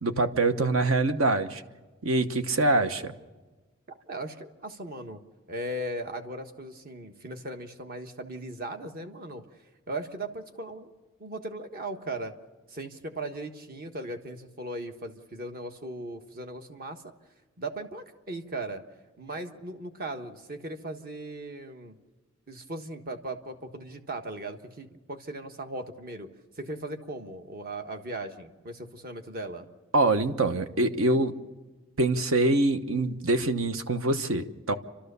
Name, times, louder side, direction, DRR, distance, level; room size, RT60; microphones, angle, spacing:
voice 1, 0.0-1.6 2.0-3.1 29.9-31.3 32.0-34.7, right 2 dB, 70° right, 9 dB, 1.1 m, -24 dB
voice 2, 3.9-5.2 5.5-9.4 9.9-10.9 11.2-12.3 12.7-17.1 17.6-18.8 19.2-22.0 22.5-26.3 26.6-29.7, right 1 dB, 45° right, 6 dB, 1.3 m, -38 dB
29.5 x 13.0 x 6.8 m, 1.2 s
head